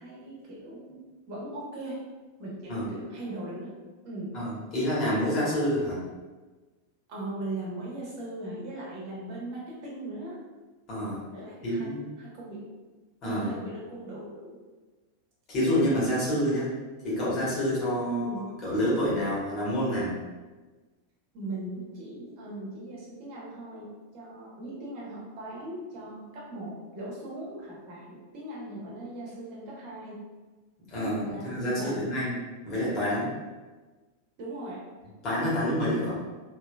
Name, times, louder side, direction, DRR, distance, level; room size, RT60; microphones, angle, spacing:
voice 1, 0.0-2.0 2.4-3.7 4.0-4.4 7.1-10.4 11.3-11.8 12.2-12.7 13.2-14.6 18.1-18.5 21.3-30.2 31.0-32.0 34.4-34.8, right 1 dB, 45° right, -5 dB, 1.1 m, -39 dB
voice 2, 4.3-6.0 10.9-11.2 11.6-12.0 13.2-13.5 15.5-16.7 17.0-20.2 30.9-32.3 32.6-33.3 35.2-36.2, equal, 35° left, -7 dB, 1.5 m, -28 dB
3.3 x 3.1 x 2.3 m, 1.3 s
figure-of-eight pair, 90°, 0 cm